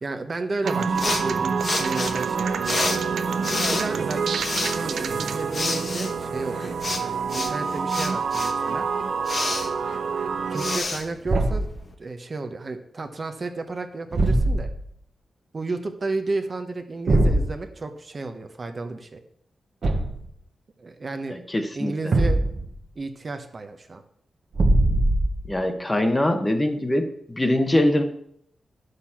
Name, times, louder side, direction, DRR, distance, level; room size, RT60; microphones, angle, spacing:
voice 1, 0.0-2.7 3.7-6.7 7.0-8.9 10.5-11.7 12.0-14.7 15.5-19.2 20.8-21.4 21.7-22.4 23.0-24.0, right 3 dB, 35° right, 7 dB, 0.9 m, -32 dB
sound 1, 0.6-10.8, right 5 dB, 75° right, 0.9 m, -27 dB
sound 2, 0.9-11.9, left 3 dB, 35° left, 1.3 m, -31 dB
Thump thud, 11.3-11.8 14.1-14.8 17.1-17.5 19.8-20.3 22.1-22.8 24.5-25.5, right 1 dB, 50° right, 1.3 m, -21 dB
voice 2, 21.3-22.1 25.5-28.0, left 1 dB, 15° left, 7 dB, 1.0 m, -23 dB
10.5 x 6.6 x 5.8 m, 0.69 s
wide cardioid pair, 150°, 0 cm